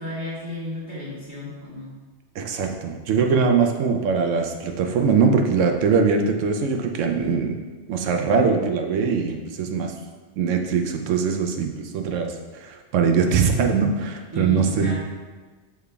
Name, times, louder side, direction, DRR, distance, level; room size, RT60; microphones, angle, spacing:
voice 1, 0.0-1.9 14.3-15.0, left 1 dB, 20° right, -13 dB, 1.4 m, -33 dB
voice 2, 2.4-7.6 7.9-9.9 10.4-14.9, right 5 dB, 85° right, 4 dB, 0.9 m, -22 dB
6.7 x 3.3 x 2.2 m, 1.4 s
omnidirectional pair, 1.2 m